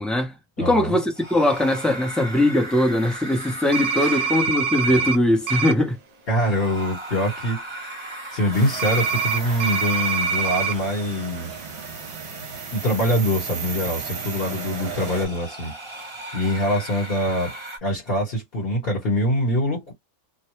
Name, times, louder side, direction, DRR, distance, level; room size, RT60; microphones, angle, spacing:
voice 1, 0.0-6.0, left 1 dB, ahead, 0.8 m, -21 dB
voice 2, 0.6-0.9 4.0-4.3 6.3-7.6 8.3-11.6 12.7-15.7 16.3-17.5 17.8-19.9, equal, 45° left, 1.6 m, -24 dB
sound 1, 1.0-17.8, right 1 dB, 30° right, 0.6 m, -39 dB
sound 2, 3.7-5.2 5.5-5.7 8.8-10.7, right 5 dB, 80° right, 1.0 m, -24 dB
sound 3, 8.5-15.3, right 5 dB, 60° right, 1.1 m, -35 dB
2.7 x 2.2 x 3.2 m
omnidirectional pair, 1.4 m